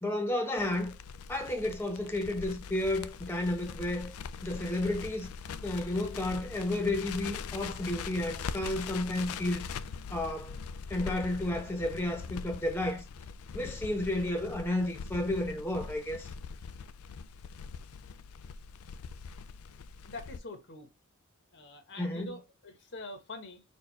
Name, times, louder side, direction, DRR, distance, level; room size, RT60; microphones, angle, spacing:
voice 1, 0.0-0.9 1.3-4.1 4.4-5.3 5.6-9.7 10.1-10.5 10.9-13.0 13.5-16.3 22.0-22.3, left 1 dB, 10° left, 0.9 m, -32 dB
Crackle, 0.6-20.4, left 5 dB, 75° left, 0.4 m, -42 dB
voice 2, 20.0-20.9 21.5-23.6, left 2 dB, 55° left, 1.0 m, -45 dB
4.4 x 2.4 x 4.3 m
head